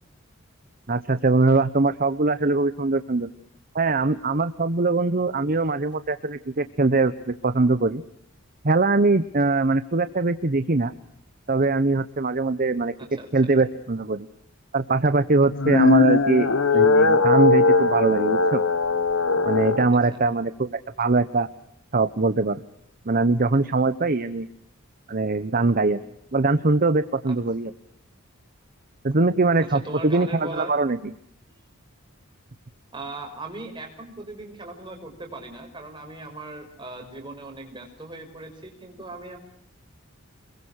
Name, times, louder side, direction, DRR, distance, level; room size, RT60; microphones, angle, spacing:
voice 1, 0.9-3.3 3.7-8.0 8.6-10.9 11.5-12.9 13.3-14.3 14.7-16.5 16.7-18.6 19.4-21.5 21.9-22.6 23.1-24.5 25.1-26.0 26.3-27.7 29.0-31.1, right 3 dB, 40° right, 12 dB, 0.9 m, -22 dB
sound 1, 15.5-19.9, left 3 dB, 70° left, 1.2 m, -19 dB
voice 2, 29.6-30.8 31.5-31.6 32.9-39.4, right 2 dB, 20° right, 3 dB, 5.9 m, -38 dB
27.5 x 22.0 x 6.5 m, 0.72 s
head